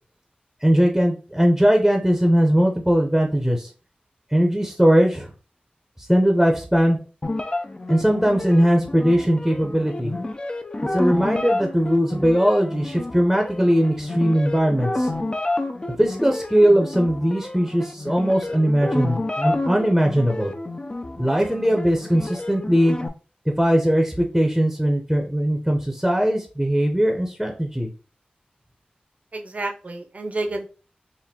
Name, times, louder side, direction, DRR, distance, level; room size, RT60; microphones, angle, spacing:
voice 1, 0.6-3.7 4.3-5.3 6.1-7.0 7.9-10.1 10.9-15.1 16.0-20.5 21.2-23.0 23.6-27.9, equal, 5° right, 2 dB, 0.7 m, -19 dB
sound 1, 7.2-23.1, left 2 dB, 30° left, 0.4 m, -30 dB
voice 2, 29.3-30.7, right 2 dB, 50° right, 3 dB, 0.7 m, -29 dB
4.2 x 2.5 x 2.8 m, 0.36 s
wide cardioid pair, 55°, 3 cm